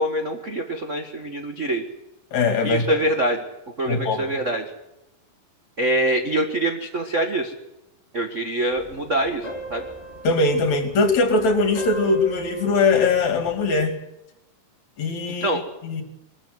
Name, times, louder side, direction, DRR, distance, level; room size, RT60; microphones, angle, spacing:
voice 1, 0.0-1.8 2.6-3.4 3.8-4.7 5.8-7.5 8.1-9.8 15.4-15.6, right 1 dB, 50° right, 5 dB, 0.8 m, -24 dB
voice 2, 2.3-2.8 3.9-4.3 10.2-13.9 15.0-16.0, left 3 dB, 55° left, 7 dB, 3.7 m, -21 dB
sound 1, 8.7-13.8, equal, 20° left, 3.2 m, -39 dB
22.5 x 13.5 x 9.4 m, 0.90 s
omnidirectional pair, 3.9 m